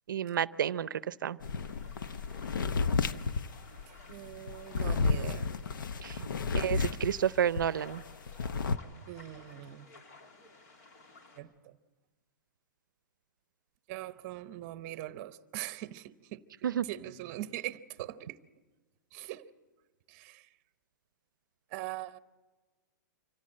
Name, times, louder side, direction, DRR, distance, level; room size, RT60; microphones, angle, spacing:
voice 1, 0.1-1.4 6.0-6.2 6.5-8.0 16.6-16.8, right 9 dB, 85° right, 0.6 m, -30 dB
sound 1, 1.4-7.7 8.0-8.8, left 4 dB, 90° left, 0.8 m, -32 dB
sound 2, 1.4-11.4, left 2 dB, 60° left, 3.4 m, -55 dB
voice 2, 4.1-5.5 9.1-9.9 11.4-11.8 13.9-16.5 16.9-18.4 19.1-19.5 20.1-20.5 21.7-22.2, right 15 dB, 35° right, 0.8 m, -42 dB
25.0 x 15.5 x 7.5 m
hypercardioid pair, 150°, 11 cm